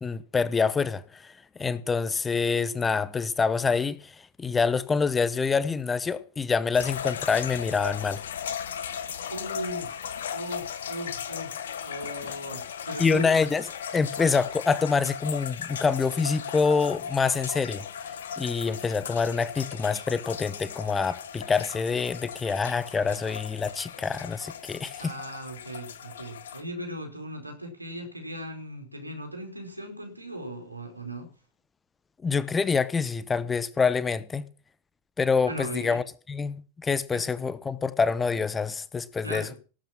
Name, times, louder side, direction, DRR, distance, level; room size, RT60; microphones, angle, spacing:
voice 1, 0.0-1.3 1.6-4.1 4.4-8.2 13.0-13.7 13.9-17.8 18.4-25.1 32.2-34.5 35.2-39.5, left 5 dB, 15° left, 0.9 m, -26 dB
sound 1, 6.7-26.6, left 8 dB, 65° left, 1.5 m, -37 dB
voice 2, 9.3-13.3 25.0-31.3 35.5-36.0 39.2-39.6, equal, 85° right, 4.6 m, -38 dB
18.5 x 9.0 x 6.1 m
figure-of-eight pair, 90°, 0 cm